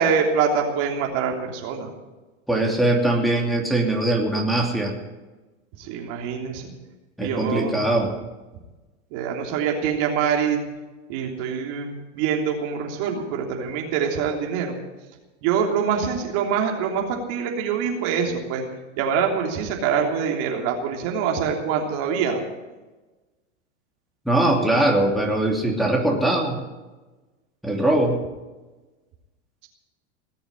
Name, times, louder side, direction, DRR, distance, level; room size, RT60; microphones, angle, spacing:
voice 1, 0.0-1.9 5.8-6.7 7.2-7.8 9.1-10.6 11.1-14.8 15.4-18.6 19.0-22.4 24.7-24.9, right 6 dB, 60° right, 1 dB, 3.3 m, -25 dB
voice 2, 2.5-4.9 7.2-8.1 24.2-26.6 27.6-28.2, right 1 dB, ahead, -1 dB, 3.0 m, -21 dB
19.0 x 7.0 x 9.9 m, 1.2 s
hypercardioid pair, 105°, 35 cm